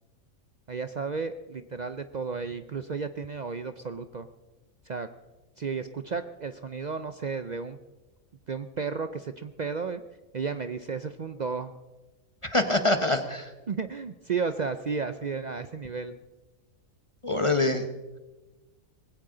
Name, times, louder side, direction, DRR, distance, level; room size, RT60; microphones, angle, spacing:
voice 1, 0.7-4.3 4.8-5.1 5.6-7.8 8.5-10.0 10.3-11.7 13.7-16.2, right 5 dB, 55° right, 10 dB, 0.4 m, -33 dB
voice 2, 12.4-13.5 17.2-17.8, left 2 dB, 25° left, 8 dB, 0.8 m, -25 dB
20.0 x 16.0 x 3.9 m, 1.1 s
omnidirectional pair, 1.4 m